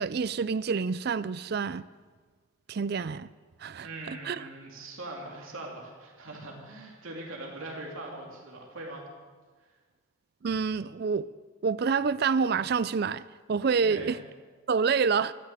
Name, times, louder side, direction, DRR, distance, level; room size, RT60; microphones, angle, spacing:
voice 1, 0.0-1.9 2.7-3.3 3.6-4.5 10.4-11.3 11.6-14.2 14.7-15.3, right 5 dB, 50° right, 0.4 m, -28 dB
voice 2, 3.8-9.0 13.8-14.1, right 2 dB, 75° right, 3.0 m, -41 dB
13.0 x 7.6 x 8.8 m
head